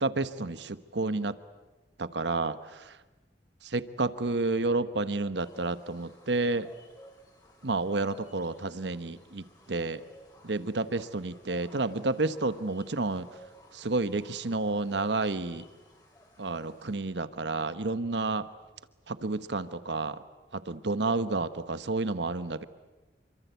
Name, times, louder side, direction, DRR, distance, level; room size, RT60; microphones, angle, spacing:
voice 1, 0.0-1.4 2.0-2.8 3.6-6.7 7.6-10.0 10.4-13.3 13.7-15.6 16.4-18.5 19.1-20.2 20.5-22.7, right 3 dB, 80° right, 13 dB, 1.1 m, -30 dB
sound 1, 5.4-17.0, equal, 25° left, 4.8 m, -55 dB
27.5 x 24.5 x 8.2 m, 1.1 s
head